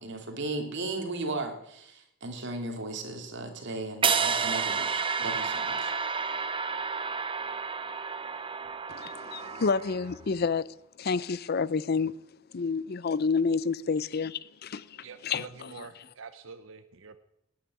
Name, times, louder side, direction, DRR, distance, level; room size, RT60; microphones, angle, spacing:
voice 1, 0.0-5.9, right 2 dB, 60° right, 2.8 m, -36 dB
sound 1, 4.0-10.2, right 5 dB, 25° right, 0.8 m, -30 dB
voice 2, 8.9-10.7 11.0-12.1 12.5-15.0 15.2-15.4, left 5 dB, 50° left, 0.5 m, -29 dB
voice 3, 15.0-17.2, right 5 dB, 80° right, 0.9 m, -46 dB
18.5 x 8.9 x 8.4 m
head